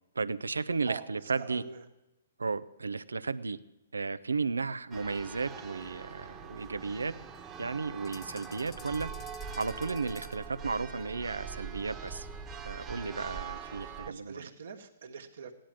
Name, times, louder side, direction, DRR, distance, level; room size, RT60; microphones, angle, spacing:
voice 1, 0.2-1.6 2.4-3.6 3.9-7.1 7.6-9.1 9.6-12.3 12.6-14.4, right 4 dB, 85° right, 16 dB, 0.7 m, -34 dB
voice 2, 0.8-1.9 13.5-15.5, right 6 dB, 65° right, 4 dB, 1.5 m, -44 dB
Church bell, 4.9-14.1, right 6 dB, 15° right, 1.2 m, -43 dB
sound 1, 8.0-10.5, left 8 dB, 20° left, 0.7 m, -53 dB
15.5 x 10.0 x 7.5 m, 0.95 s
hypercardioid pair, 130°, 0 cm